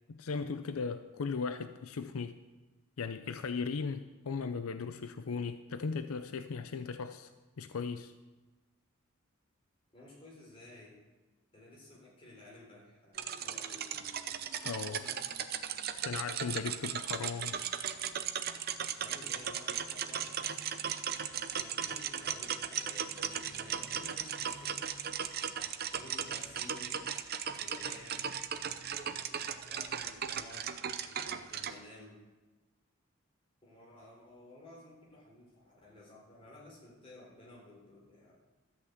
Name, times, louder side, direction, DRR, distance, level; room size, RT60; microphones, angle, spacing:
voice 1, 0.1-2.4 3.0-7.3 7.6-8.1 14.6-15.1 16.0-17.6, left 5 dB, 80° left, 10 dB, 0.5 m, -37 dB
voice 2, 9.9-11.0 11.5-14.0 14.9-15.4 18.9-20.6 21.5-24.9 25.9-27.0 27.6-28.3 29.7-30.9 31.5-32.2 33.6-38.3, left 2 dB, 25° left, -3 dB, 3.7 m, -54 dB
sound 1, 13.1-31.8, right 8 dB, 45° right, 0.6 m, -37 dB
13.5 x 5.8 x 8.0 m, 1.2 s
head